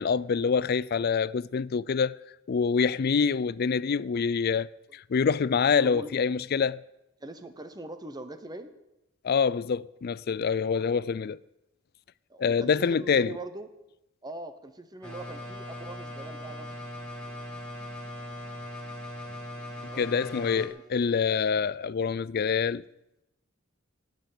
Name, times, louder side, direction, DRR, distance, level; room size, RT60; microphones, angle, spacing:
voice 1, 0.0-2.2 2.5-6.8 9.2-11.4 12.4-13.3 20.0-22.8, left 6 dB, 50° left, 0.4 m, -26 dB
voice 2, 5.7-6.1 7.2-8.7 10.8-11.0 12.3-13.7 14.2-16.8 19.8-20.2 20.5-21.0, right 2 dB, 20° right, 1.0 m, -42 dB
sound 1, 15.0-20.7, left 1 dB, 5° left, 2.2 m, -40 dB
18.5 x 8.1 x 6.7 m
head